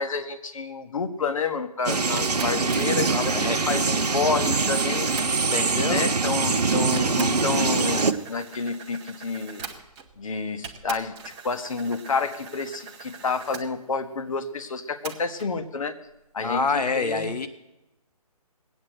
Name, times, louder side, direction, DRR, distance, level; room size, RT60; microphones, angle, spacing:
voice 1, 0.0-5.1 5.9-9.6 10.2-11.1 11.4-15.9 16.3-17.3, left 4 dB, 55° left, 9 dB, 1.4 m, -29 dB
sound 1, 1.8-8.1, right 4 dB, 90° right, 1.1 m, -23 dB
sound 2, 2.2-5.7 6.5-6.6 7.0-10.2 10.6-13.7 15.0-15.5, right 6 dB, 15° right, 0.9 m, -42 dB
voice 2, 3.1-3.6 5.5-6.0 16.4-17.5, left 3 dB, 80° left, 9 dB, 1.2 m, -27 dB
20.0 x 8.5 x 7.8 m, 0.94 s
figure-of-eight pair, 160°, 20 cm